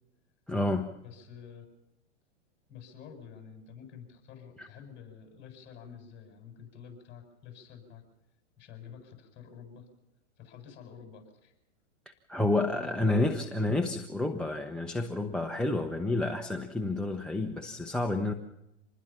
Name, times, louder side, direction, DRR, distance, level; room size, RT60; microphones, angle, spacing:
voice 1, 0.5-0.9 4.6-4.7 12.3-18.3, left 2 dB, ahead, 8 dB, 0.9 m, -29 dB
voice 2, 1.0-1.7 2.7-8.0 8.6-9.9 10.4-11.5 12.7-13.3, left 7 dB, 30° left, 4 dB, 7.3 m, -49 dB
26.0 x 20.5 x 5.9 m, 0.88 s
hypercardioid pair, 130°, 36 cm